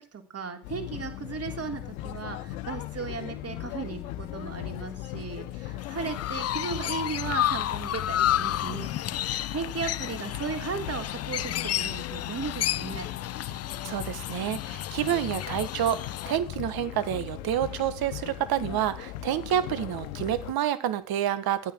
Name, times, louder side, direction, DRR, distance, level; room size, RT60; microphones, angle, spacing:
voice 1, 0.0-13.1, right 5 dB, 35° right, 5 dB, 3.5 m, -36 dB
sound 1, 0.6-20.5, left 13 dB, 85° left, 1.1 m, -39 dB
sound 2, 0.7-16.7, left 15 dB, 55° left, 0.9 m, -42 dB
Chirp tweet, 5.8-16.4, left 12 dB, 35° left, 0.6 m, -31 dB
voice 2, 13.8-21.7, right 11 dB, 60° right, 13 dB, 1.8 m, -28 dB
12.5 x 9.3 x 6.3 m, 0.38 s
hypercardioid pair, 65°, 42 cm